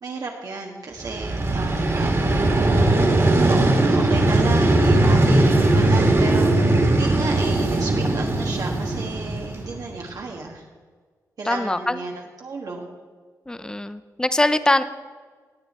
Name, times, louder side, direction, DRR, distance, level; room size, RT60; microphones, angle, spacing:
voice 1, 0.0-2.2 2.6-2.9 3.5-10.6 11.4-12.9, right 3 dB, 65° right, 0 dB, 1.5 m, -33 dB
Vehicle, 1.0-10.0, right 2 dB, 45° right, 2.1 m, -19 dB
voice 2, 11.4-12.0 13.5-14.8, left 1 dB, 10° left, 12 dB, 0.6 m, -22 dB
17.0 x 8.6 x 4.3 m, 1.5 s
cardioid pair, 85°, 7 cm